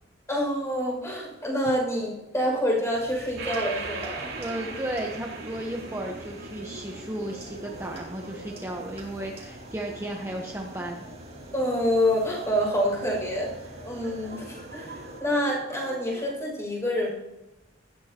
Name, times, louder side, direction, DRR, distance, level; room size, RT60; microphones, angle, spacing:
voice 1, 0.3-4.3 11.5-13.5 13.8-17.1, equal, 15° left, -2 dB, 6.4 m, -27 dB
sound 1, 2.9-15.2, right 1 dB, 35° right, 4.3 m, -47 dB
sound 2, 3.4-16.3, right 3 dB, 80° right, 4.3 m, -41 dB
voice 2, 4.4-11.0, right 1 dB, 15° right, 0 dB, 1.1 m, -34 dB
17.5 x 15.0 x 3.0 m, 0.97 s
head